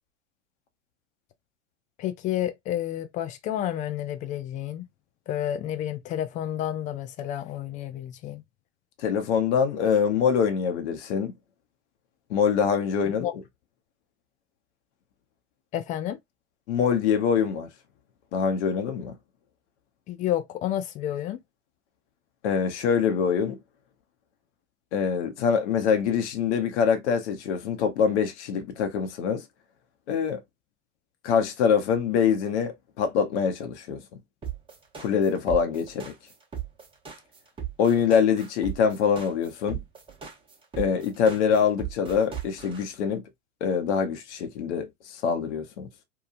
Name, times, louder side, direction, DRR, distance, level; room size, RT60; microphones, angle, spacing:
voice 1, 2.0-4.9 5.3-8.4 13.2-13.3 15.7-16.2 20.1-21.4, left 11 dB, 20° left, 0.3 m, -30 dB
voice 2, 9.0-11.3 12.3-13.3 16.7-17.7 18.3-19.1 22.4-23.6 24.9-29.4 30.1-30.4 31.2-34.0 35.0-36.1 37.8-39.8 40.8-43.2 43.6-45.9, left 7 dB, 60° left, 0.9 m, -24 dB
sound 1, 34.4-42.8, right 10 dB, 15° right, 0.9 m, -36 dB
2.9 x 2.3 x 2.5 m
hypercardioid pair, 95°, 38 cm